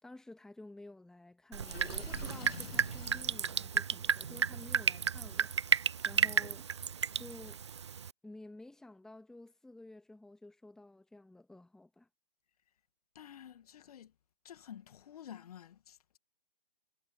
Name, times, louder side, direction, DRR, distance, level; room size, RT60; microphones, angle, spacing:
voice 1, 0.0-5.5 5.8-6.7 7.2-7.6 8.2-12.1, left 2 dB, ahead, 1.9 m, -52 dB
Drip, 1.5-8.1, right 7 dB, 30° right, 0.4 m, -33 dB
Water / Sink (filling or washing), 1.6-3.4, left 4 dB, 75° left, 1.3 m, -47 dB
voice 2, 13.2-14.1 14.4-16.2, left 10 dB, 40° left, 1.9 m, -51 dB
figure-of-eight pair, 135°, 30 cm